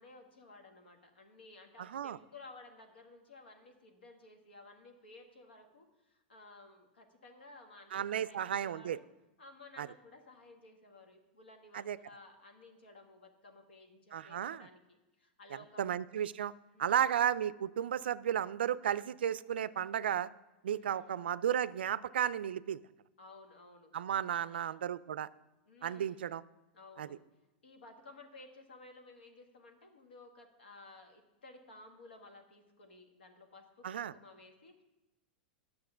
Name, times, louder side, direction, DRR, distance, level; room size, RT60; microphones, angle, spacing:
voice 1, 0.0-9.1 9.4-15.9 16.7-17.2 20.7-21.2 23.2-23.9 24.3-24.8 25.6-26.3 26.7-27.2 27.6-34.8, left 2 dB, 90° left, 4 dB, 1.5 m, -56 dB
voice 2, 7.9-9.0 9.8-9.9 11.7-12.0 14.1-14.7 15.8-16.5 16.8-20.3 20.6-22.8 23.9-25.3 25.8-26.4 27.0-27.1 33.8-34.1, right 9 dB, 85° right, 18 dB, 0.3 m, -33 dB
10.5 x 6.6 x 5.6 m, 1.0 s
hypercardioid pair, 115°, 5 cm